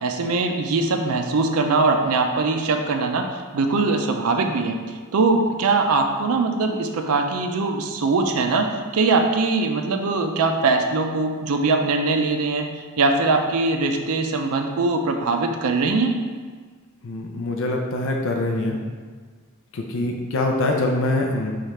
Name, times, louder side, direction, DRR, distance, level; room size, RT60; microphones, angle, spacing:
voice 1, 0.0-3.3 3.5-4.8 5.1-12.7 13.0-16.1, right 3 dB, 85° right, 5 dB, 0.4 m, -21 dB
voice 2, 17.0-18.8 19.7-21.5, left 2 dB, 60° left, 1 dB, 0.5 m, -24 dB
4.9 x 2.4 x 4.2 m, 1.5 s
head